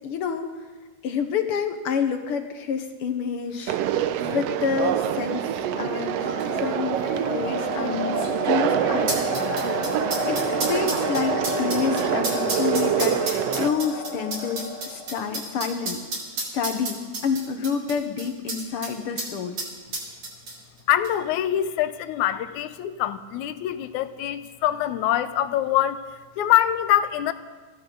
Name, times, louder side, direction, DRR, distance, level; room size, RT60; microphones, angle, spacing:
voice 1, 0.0-0.5 1.0-3.8 4.3-5.5 5.8-6.3 6.5-7.0 7.3-9.2 10.3-16.0 16.4-19.6, left 6 dB, 60° left, 7 dB, 1.5 m, -28 dB
sound 1, 3.7-3.8 4.0-4.4 5.2-5.3 6.2-18.9 19.2-19.3 19.6-20.8 21.0-21.1, right 2 dB, 60° right, 5.0 m, -32 dB
Conversation, 3.7-13.7, right 11 dB, 85° right, 1.4 m, -26 dB
sound 2, 4.6-15.5, left 2 dB, 30° left, 0.6 m, -32 dB
voice 2, 20.9-26.0 26.4-27.3, left 12 dB, 80° left, 12 dB, 2.1 m, -24 dB
24.0 x 15.5 x 3.9 m, 1.3 s
omnidirectional pair, 3.6 m